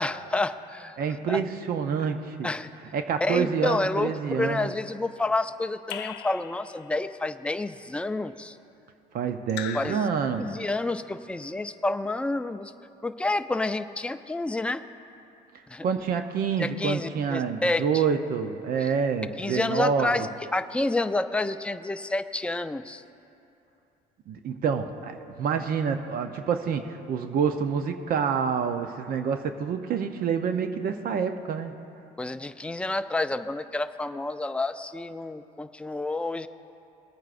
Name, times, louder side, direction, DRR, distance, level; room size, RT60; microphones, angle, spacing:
voice 1, 0.0-1.0 1.3-1.4 2.4-2.7 3.2-8.6 9.7-10.0 10.4-12.7 13.0-14.8 15.7-15.9 16.6-17.8 18.8-18.9 19.4-20.3 20.5-23.0 32.2-36.5, left 2 dB, 5° left, 9 dB, 0.4 m, -29 dB
voice 2, 1.0-2.5 2.9-4.7 9.1-10.6 15.8-20.3 24.3-31.8, right 6 dB, 60° right, 7 dB, 0.7 m, -27 dB
Raindrop / Drip, 5.9-7.1 9.5-10.8, left 11 dB, 85° left, 0.5 m, -40 dB
21.5 x 9.2 x 2.5 m, 2.7 s
cardioid pair, 110°, 17 cm